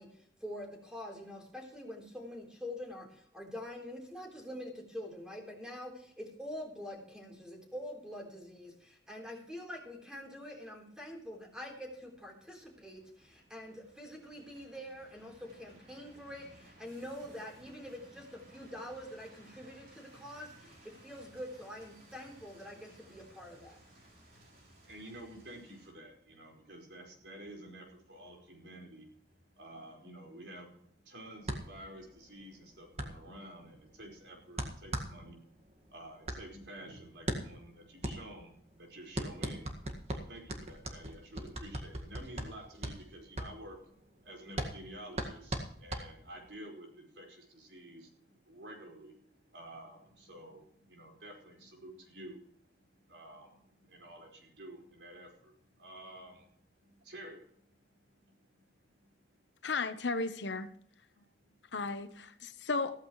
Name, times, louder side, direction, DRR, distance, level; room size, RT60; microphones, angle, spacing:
voice 1, 0.0-23.8, left 1 dB, 5° right, 3.7 m, -45 dB
sound 1, 10.7-25.9, right 1 dB, 50° right, 4.3 m, -60 dB
voice 2, 24.5-39.7 40.1-56.5 56.8-57.6 58.0-59.1 59.6-59.7 61.1-61.5, right 1 dB, 85° right, 5.0 m, -51 dB
sound 2, 31.4-46.6, right 1 dB, 35° right, 1.8 m, -40 dB
voice 3, 59.6-60.7 61.7-63.0, left 3 dB, 85° left, 1.0 m, -34 dB
15.5 x 14.5 x 3.2 m
head